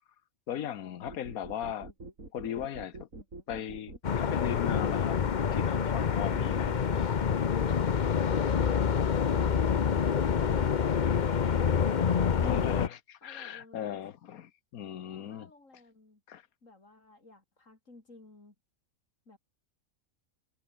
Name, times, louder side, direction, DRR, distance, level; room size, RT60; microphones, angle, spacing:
voice 1, 0.5-1.9 2.3-3.1 3.5-5.2 5.5-6.7 12.4-15.5 16.3-16.4, left 10 dB, 80° left, 1.4 m, -37 dB
sound 1, 1.1-7.0, right 2 dB, 65° right, 4.9 m, -45 dB
sound 2, 4.0-12.9, left 7 dB, 40° left, 0.8 m, -27 dB
voice 2, 13.2-14.0 15.1-16.2 16.6-18.6 19.3-19.4, left 2 dB, 60° left, 4.6 m, -54 dB
omnidirectional pair, 1.5 m